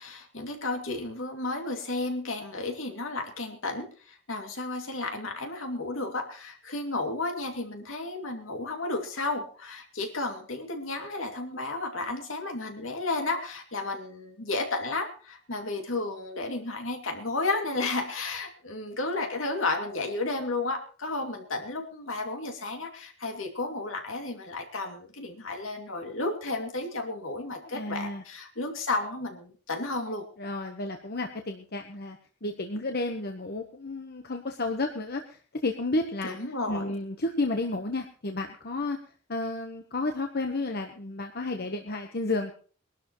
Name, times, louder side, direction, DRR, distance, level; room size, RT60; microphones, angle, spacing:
voice 1, 0.0-30.2 36.2-36.9, left 2 dB, 75° left, 4 dB, 2.6 m, -33 dB
voice 2, 27.7-28.2 30.4-36.4 36.7-39.0 39.3-42.5, left 2 dB, 50° left, 4 dB, 1.2 m, -32 dB
22.5 x 12.0 x 3.1 m, 0.39 s
head